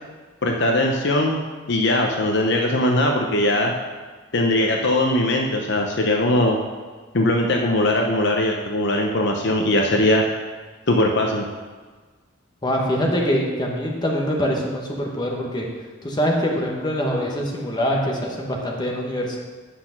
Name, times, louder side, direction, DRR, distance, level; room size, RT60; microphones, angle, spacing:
voice 1, 0.4-1.4 1.7-3.7 4.3-6.6 7.1-10.3 10.9-11.4, left 1 dB, 55° left, 1 dB, 0.8 m, -20 dB
voice 2, 12.6-15.6 16.0-19.4, equal, 20° left, -1 dB, 1.3 m, -24 dB
8.4 x 5.9 x 5.9 m, 1.4 s
head